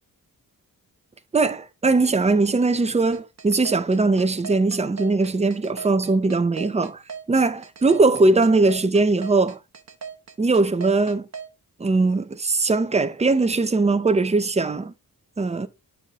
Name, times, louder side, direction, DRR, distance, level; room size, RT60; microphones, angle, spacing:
voice 1, 1.3-7.0 7.3-9.6 10.4-11.3 11.8-14.9 15.4-15.7, right 3 dB, 20° right, 0.7 m, -20 dB
sound 1, 3.1-11.5, right 6 dB, 45° right, 1.1 m, -37 dB
9.0 x 5.0 x 3.0 m
wide cardioid pair, 120°, 37 cm